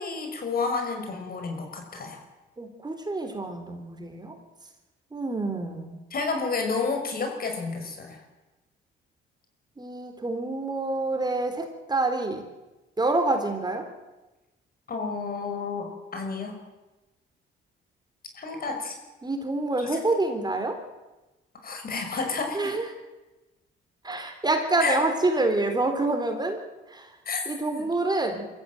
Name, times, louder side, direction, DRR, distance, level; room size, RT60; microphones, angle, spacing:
voice 1, 0.0-2.2 6.1-8.2 14.9-16.6 18.3-19.0 19.8-20.0 21.6-22.7 24.8-25.0 27.3-27.8, left 4 dB, 50° left, 4 dB, 6.0 m, -30 dB
voice 2, 2.6-4.3 5.1-6.0 9.8-12.4 13.0-13.8 19.2-20.8 22.5-22.9 24.0-26.6 26.9-27.1 27.5-28.5, right 2 dB, 20° right, 5 dB, 4.0 m, -27 dB
23.0 x 15.0 x 9.3 m, 1.1 s
cardioid pair, 90°, 20 cm